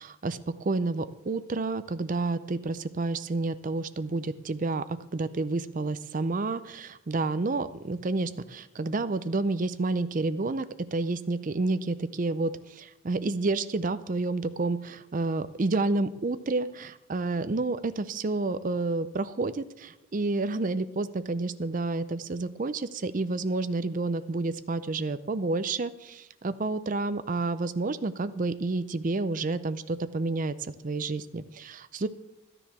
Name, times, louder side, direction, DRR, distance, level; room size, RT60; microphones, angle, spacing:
voice 1, 0.0-32.1, right 3 dB, 40° right, 13 dB, 0.5 m, -30 dB
12.0 x 10.0 x 6.0 m, 0.89 s
head